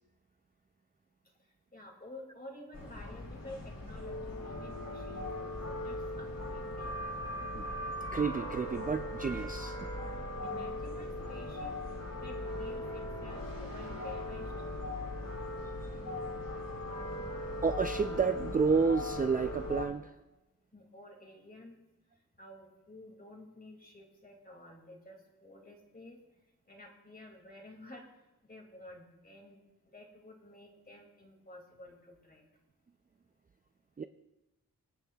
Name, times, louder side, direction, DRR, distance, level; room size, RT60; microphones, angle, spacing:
voice 1, 1.7-7.0 10.4-11.7 12.2-14.5 20.7-21.8 22.4-26.2 26.7-28.0 28.4-29.6 29.8-32.4, left 1 dB, 25° left, 1 dB, 2.3 m, -51 dB
sound 1, 2.7-19.9, left 1 dB, 70° left, 2.7 m, -39 dB
voice 2, 8.1-9.9 17.6-20.1 34.0-34.1, right 5 dB, 25° right, 8 dB, 0.4 m, -30 dB
25.5 x 9.0 x 2.3 m, 0.99 s
wide cardioid pair, 105°, 35 cm